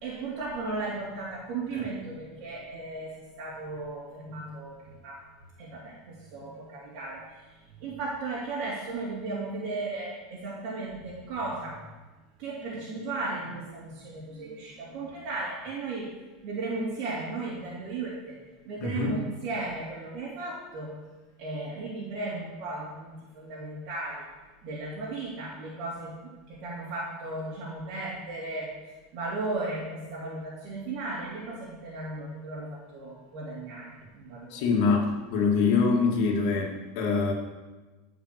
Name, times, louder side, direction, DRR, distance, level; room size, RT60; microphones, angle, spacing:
voice 1, 0.0-4.8 5.0-5.2 5.6-7.4 7.8-11.8 12.4-16.1 16.4-18.3 18.6-21.0 21.4-24.2 24.6-28.7 29.1-34.7, right 3 dB, 45° right, -7 dB, 3.3 m, -35 dB
voice 2, 18.8-19.2 34.5-35.0 35.3-37.3, left 4 dB, 55° left, 0 dB, 2.5 m, -24 dB
14.0 x 6.0 x 6.9 m, 1.2 s
supercardioid pair, 165°, 0 cm